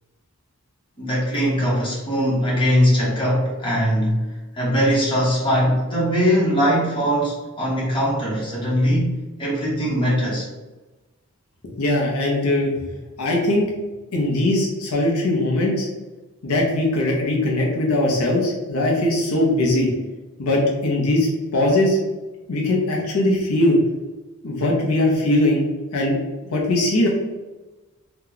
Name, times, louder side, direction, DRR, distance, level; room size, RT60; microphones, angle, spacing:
voice 1, 1.0-10.5, equal, 25° left, -5 dB, 1.0 m, -21 dB
voice 2, 11.8-12.7 13.2-13.7 14.1-15.9 16.4-19.9 20.4-22.0 22.5-23.8 24.4-25.6 25.9-26.2 26.4-27.1, left 1 dB, 80° left, -2 dB, 0.7 m, -20 dB
2.9 x 2.3 x 3.8 m, 1.2 s
head